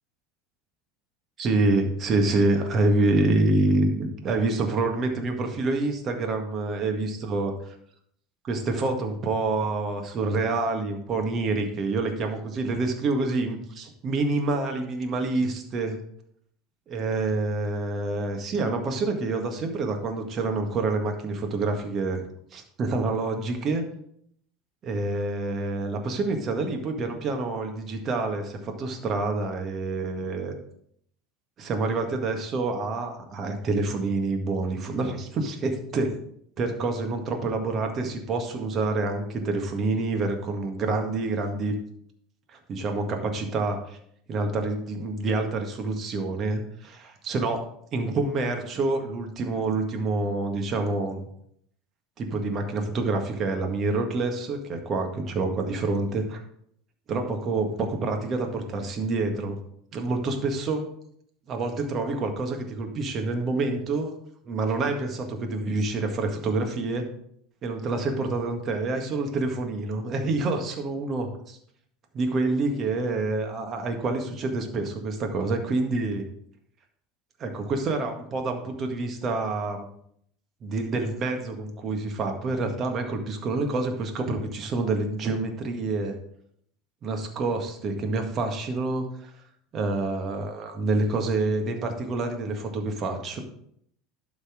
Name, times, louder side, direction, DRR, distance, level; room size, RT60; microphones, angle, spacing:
voice 1, 1.4-7.8 8.4-16.0 16.9-22.3 22.5-23.8 24.8-30.5 31.6-36.1 36.6-41.7 42.5-44.0 44.3-47.7 47.9-51.2 52.2-56.4 57.1-59.6 59.9-60.8 61.5-64.1 64.4-67.1 67.6-71.6 72.1-76.2 77.4-79.9 80.6-86.1 87.0-89.3 89.7-93.4, right 3 dB, 40° right, 4 dB, 1.8 m, -27 dB
11.5 x 4.1 x 5.1 m, 0.68 s
hypercardioid pair, 80°, 0 cm